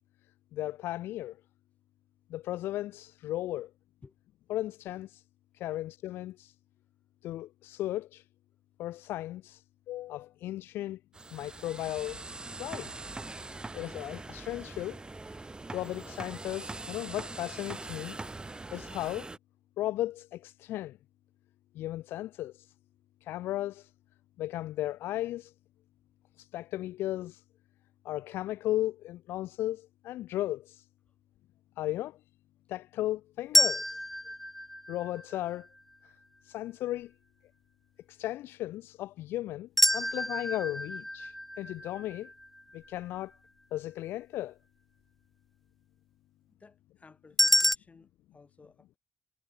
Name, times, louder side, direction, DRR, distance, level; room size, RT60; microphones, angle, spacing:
voice 1, 0.5-1.4 2.3-3.7 4.5-5.2 5.5-6.5 7.2-8.2 8.8-11.0 11.3-12.2 12.6-12.9 13.7-15.0 15.7-18.2 18.7-19.3 19.8-21.0 21.7-22.7 23.2-23.9 24.4-25.5 26.4-27.4 28.0-30.8 31.8-32.2 32.7-34.0 34.9-35.7 36.4-37.1 38.1-42.3 42.7-43.3 43.7-44.6, left 15 dB, 80° left, 0.4 m, -35 dB
sound 1, 11.1-19.4, right 2 dB, 25° right, 1.9 m, -42 dB
sound 2, 33.5-35.6 39.8-42.9 47.4-47.7, left 1 dB, 5° left, 0.5 m, -28 dB
voice 2, 46.5-49.0, left 4 dB, 35° left, 4.4 m, -57 dB
supercardioid pair, 55°, 4 cm